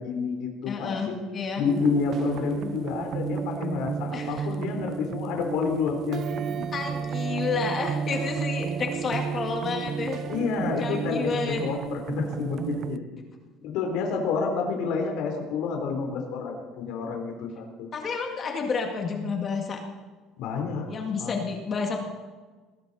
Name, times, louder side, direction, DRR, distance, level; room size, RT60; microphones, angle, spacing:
voice 1, 0.0-1.2 1.6-6.6 10.3-13.0 13.6-17.9 20.4-20.9 21.2-21.3, left 5 dB, 70° left, 2 dB, 3.4 m, -29 dB
voice 2, 0.7-1.6 4.1-4.5 6.7-10.2 10.8-11.6 17.9-19.8 20.9-22.0, left 5 dB, 30° left, 2 dB, 1.8 m, -30 dB
sound 1, 1.6-13.0, right 7 dB, 45° right, 0.6 m, -32 dB
20.0 x 17.0 x 4.1 m, 1.4 s
cardioid pair, 150°, 0 cm